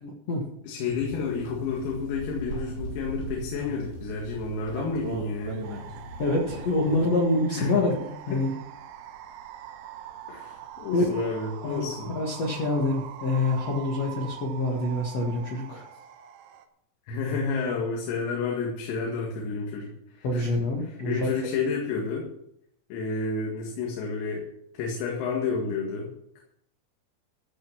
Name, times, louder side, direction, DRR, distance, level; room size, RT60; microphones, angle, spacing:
voice 1, 0.0-0.5 6.2-8.5 10.9-11.0 11.6-11.8 12.1-15.8 20.2-21.3, left 2 dB, 75° left, -1 dB, 1.5 m, -26 dB
voice 2, 0.6-5.7 7.5-7.8 8.3-8.5 10.3-12.1 17.1-22.3 22.9-24.5 24.7-26.4, left 4 dB, 90° left, -1 dB, 4.7 m, -30 dB
sound 1, 0.9-7.1, left 1 dB, 50° left, 6.4 m, -42 dB
sound 2, 0.9-15.0, right 4 dB, 55° right, 2.6 m, -43 dB
sound 3, 5.6-16.7, right 10 dB, 90° right, 3.8 m, -44 dB
15.0 x 6.6 x 7.3 m, 0.76 s
omnidirectional pair, 6.0 m